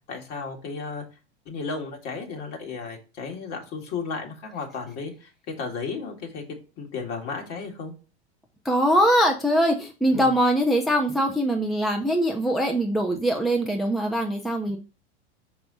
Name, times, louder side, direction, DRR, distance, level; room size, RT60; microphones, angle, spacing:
voice 1, 0.1-1.0 1.5-5.3 5.6-6.4 6.8-7.9 10.1-10.3, left 4 dB, 50° left, 2 dB, 2.1 m, -34 dB
voice 2, 8.6-14.8, equal, ahead, 3 dB, 0.7 m, -22 dB
5.7 x 4.8 x 4.0 m, 0.33 s
hypercardioid pair, 95°, 34 cm